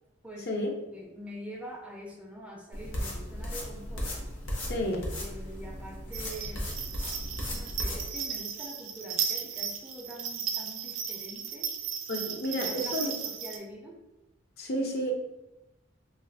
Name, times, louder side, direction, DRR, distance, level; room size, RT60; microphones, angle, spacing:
voice 1, 0.2-0.7 0.9-4.1 5.2-6.7 7.5-11.7 12.5-14.0, equal, 5° right, -2 dB, 0.4 m, -44 dB
sound 1, 2.7-8.0, left 1 dB, 75° left, 0.8 m, -36 dB
voice 2, 4.6-5.1 12.1-13.1 14.6-15.1, equal, 55° left, 1 dB, 0.5 m, -31 dB
sound 2, 6.1-13.6, right 7 dB, 80° right, 0.4 m, -35 dB
2.4 x 2.4 x 3.4 m, 0.98 s
head